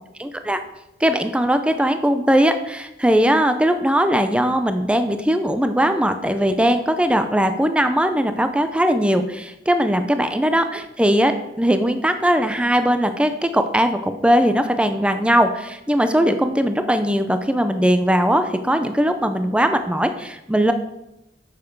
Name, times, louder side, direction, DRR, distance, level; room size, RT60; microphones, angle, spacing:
voice 1, 0.2-0.6 1.0-20.7, equal, 5° right, 8 dB, 0.5 m, -19 dB
9.4 x 7.3 x 4.6 m, 0.90 s
head